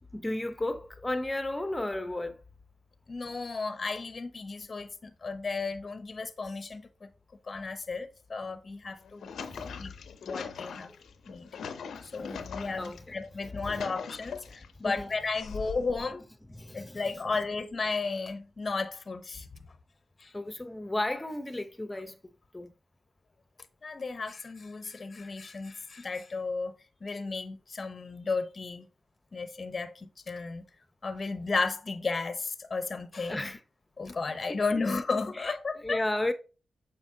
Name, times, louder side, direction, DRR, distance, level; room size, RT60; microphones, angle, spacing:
voice 1, 0.1-2.4 9.4-9.8 10.9-11.0 12.8-13.0 13.6-13.8 14.8-15.1 16.6-17.0 20.3-22.1 22.5-22.7 33.3-33.6 35.4-35.5 35.8-36.3, left 1 dB, 20° left, 0.9 m, -33 dB
voice 2, 3.1-7.1 7.5-9.3 9.8-9.9 10.3-10.9 11.3-11.5 12.0-16.2 16.7-19.5 20.2-20.3 23.8-26.7 27.0-28.9 29.3-30.6 31.0-33.5 34.0-36.0, left 4 dB, 45° left, 0.7 m, -34 dB
sound 1, 8.9-13.0 13.4-14.7 15.3-16.1, left 6 dB, 80° left, 0.6 m, -41 dB
7.2 x 5.0 x 2.7 m
supercardioid pair, 50°, 0 cm